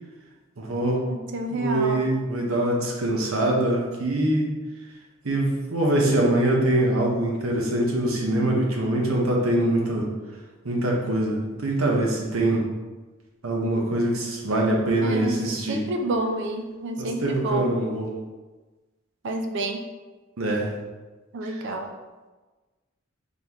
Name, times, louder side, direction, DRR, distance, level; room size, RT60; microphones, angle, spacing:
voice 1, 0.6-1.0 1.5-4.5 5.2-10.1 10.6-12.6 13.4-15.8 17.0-18.1 20.4-20.7 21.4-21.5, right 1 dB, 85° right, -1 dB, 0.8 m, -23 dB
voice 2, 1.1-2.0 15.0-15.4 15.7-17.7 19.2-19.8 21.3-21.9, right 2 dB, 60° right, 4 dB, 0.5 m, -29 dB
3.9 x 3.5 x 2.9 m, 1.2 s
head